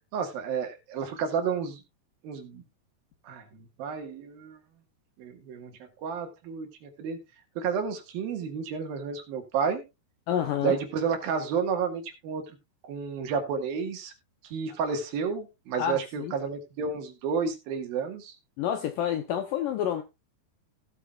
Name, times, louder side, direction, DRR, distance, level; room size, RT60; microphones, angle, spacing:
voice 1, 0.1-1.8 2.2-2.6 3.2-4.6 5.2-5.7 6.0-7.2 7.6-9.8 10.6-12.4 12.8-14.1 14.4-18.4, right 6 dB, 65° right, 3.2 m, -31 dB
voice 2, 10.3-10.8 15.8-16.3 18.6-20.0, left 10 dB, 75° left, 2.0 m, -28 dB
16.5 x 8.3 x 2.4 m
omnidirectional pair, 4.9 m